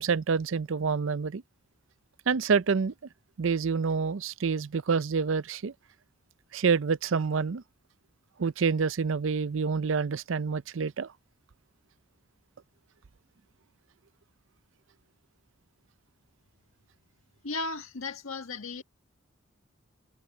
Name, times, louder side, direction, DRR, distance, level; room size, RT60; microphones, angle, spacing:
voice 1, 0.0-1.4 2.3-2.9 3.4-5.7 6.5-7.6 8.4-11.1, right 5 dB, 70° right, 0.5 m, -27 dB
voice 2, 17.4-18.8, left 3 dB, 85° left, 1.7 m, -35 dB
head